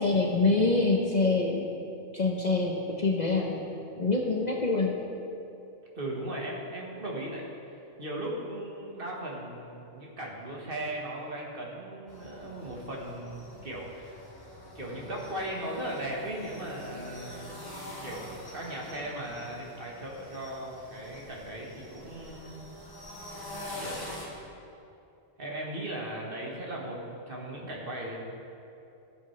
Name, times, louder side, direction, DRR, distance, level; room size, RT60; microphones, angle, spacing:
voice 1, 0.0-1.7 2.1-4.9, left 3 dB, 40° left, -1 dB, 0.8 m, -26 dB
voice 2, 5.9-7.5 7.7-14.2 14.7-17.6 18.0-22.7 23.8-24.3 25.4-28.2, right 1 dB, 50° right, -3 dB, 1.6 m, -37 dB
sound 1, 12.1-24.3, left 1 dB, 20° left, 1.5 m, -45 dB
15.0 x 7.6 x 3.2 m, 2.8 s
omnidirectional pair, 1.3 m